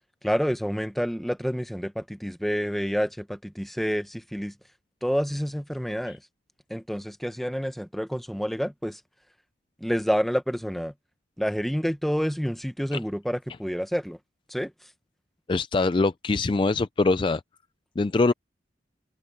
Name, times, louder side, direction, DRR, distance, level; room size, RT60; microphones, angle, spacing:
voice 1, 0.2-4.5 5.0-6.2 6.7-9.0 9.8-10.9 11.4-14.2 14.5-14.7, equal, ahead, 0.9 m, -28 dB
voice 2, 15.5-17.4 18.0-18.3, left 3 dB, 25° left, 0.3 m, -23 dB
open air
head